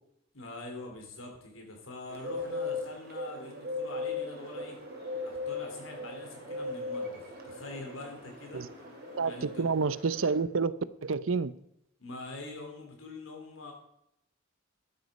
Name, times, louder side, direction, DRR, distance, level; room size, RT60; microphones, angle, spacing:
voice 1, 0.3-4.8 5.2-8.7 9.2-9.7 12.0-13.7, left 2 dB, 85° left, 2 dB, 3.7 m, -44 dB
Bird, 2.1-10.4, left 3 dB, 50° right, 2.4 m, -38 dB
sound 1, 4.3-9.6, left 2 dB, 30° left, 4.0 m, -55 dB
voice 2, 9.2-10.7 11.0-11.5, right 4 dB, 90° right, 17 dB, 0.6 m, -29 dB
11.0 x 9.4 x 5.3 m, 0.76 s
head